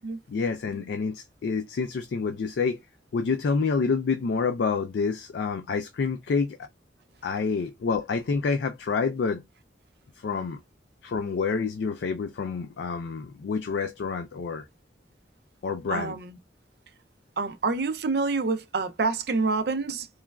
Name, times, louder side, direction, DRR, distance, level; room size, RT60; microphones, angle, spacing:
voice 1, 0.3-2.8 3.1-6.6 7.2-9.4 10.2-10.6 11.0-14.7 15.6-16.1, left 5 dB, 70° left, 0.3 m, -28 dB
voice 2, 15.9-16.4 17.4-20.1, right 4 dB, 60° right, 0.5 m, -27 dB
3.1 x 2.3 x 2.2 m
head